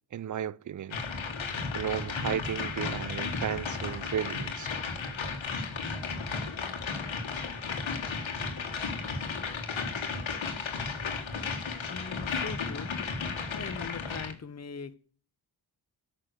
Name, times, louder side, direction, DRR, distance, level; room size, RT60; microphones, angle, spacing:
voice 1, 0.1-1.0 1.7-4.7, right 9 dB, 45° right, 0.5 m, -34 dB
sound 1, 0.9-14.3, left 4 dB, 80° left, 1.6 m, -34 dB
voice 2, 11.9-12.9 13.5-15.0, left 5 dB, 35° left, 0.8 m, -41 dB
9.4 x 6.1 x 6.6 m
cardioid pair, 50°, 46 cm